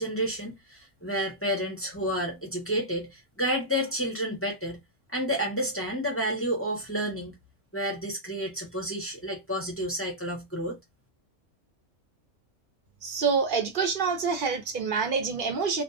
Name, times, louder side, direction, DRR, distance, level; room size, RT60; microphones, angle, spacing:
voice 1, 0.0-4.8 5.1-7.4 7.7-10.8, equal, 15° left, 0.5 m, -30 dB
voice 2, 13.0-15.8, right 5 dB, 50° right, 0.6 m, -27 dB
2.4 x 2.3 x 2.5 m
omnidirectional pair, 1.5 m